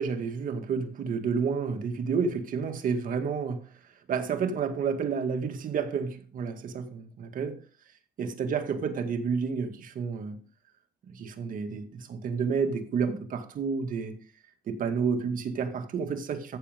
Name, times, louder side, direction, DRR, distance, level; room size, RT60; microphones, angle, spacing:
voice 1, 0.0-3.7 4.1-7.6 8.2-10.4 11.1-14.2 14.7-16.6, right 5 dB, 55° right, 2.1 m, -30 dB
14.5 x 7.0 x 3.7 m
cardioid pair, 110°, 17 cm